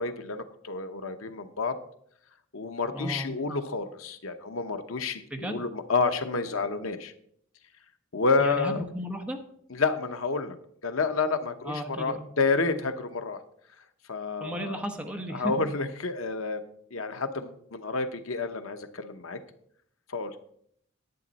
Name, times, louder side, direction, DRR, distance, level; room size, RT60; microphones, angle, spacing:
voice 1, 0.0-1.7 2.5-7.1 8.1-8.8 9.7-10.6 10.8-13.4 14.1-14.8 15.3-16.6 16.9-19.4 20.1-20.4, left 4 dB, 85° left, 9 dB, 0.9 m, -29 dB
voice 2, 2.9-3.3 5.3-5.6 8.4-9.4 11.6-12.2 14.4-15.5, equal, 5° right, 4 dB, 1.2 m, -34 dB
10.5 x 9.1 x 4.1 m, 0.67 s
head